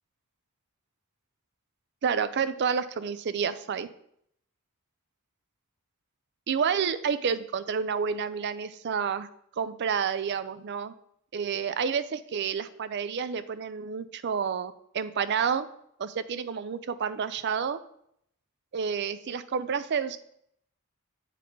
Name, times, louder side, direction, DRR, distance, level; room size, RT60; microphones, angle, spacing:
voice 1, 2.0-3.9 6.5-9.3 9.6-10.9 11.3-15.7 16.0-17.8 18.7-20.2, right 6 dB, 55° right, 13 dB, 0.4 m, -29 dB
8.3 x 4.1 x 4.5 m, 0.72 s
head